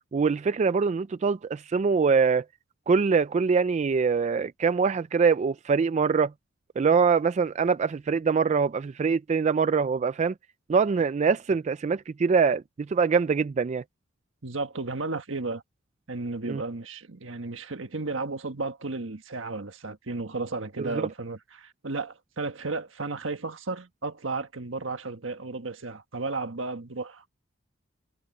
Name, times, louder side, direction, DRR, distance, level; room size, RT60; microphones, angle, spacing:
voice 1, 0.1-2.4 2.9-6.3 6.8-10.3 10.7-13.8 16.5-16.6 20.8-21.0, right 5 dB, 35° right, 0.3 m, -24 dB
voice 2, 14.4-15.6 16.1-27.2, right 3 dB, 75° right, 1.5 m, -33 dB
head